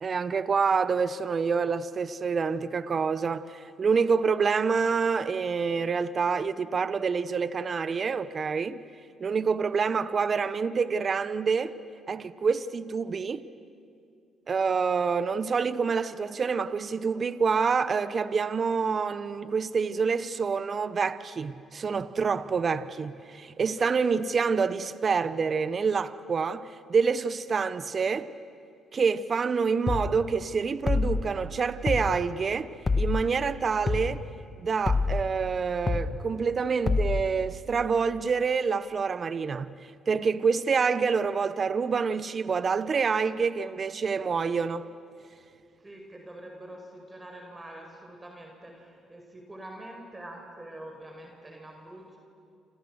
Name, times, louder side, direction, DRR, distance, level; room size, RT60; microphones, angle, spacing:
voice 1, 0.0-8.8 9.2-11.8 12.1-13.5 14.5-28.3 28.9-32.7 33.0-34.2 34.6-39.7 40.1-44.8, right 5 dB, 45° right, 1.0 m, -27 dB
sound 1, 29.9-30.1 30.9-31.2 31.9-32.1 32.9-33.2 33.9-34.1 34.9-35.2 35.9-36.1 36.9-37.2, left 4 dB, 30° left, 1.8 m, -25 dB
voice 2, 45.8-52.2, right 1 dB, 20° right, 5.1 m, -45 dB
28.0 x 27.5 x 6.5 m
supercardioid pair, 60°, 0 cm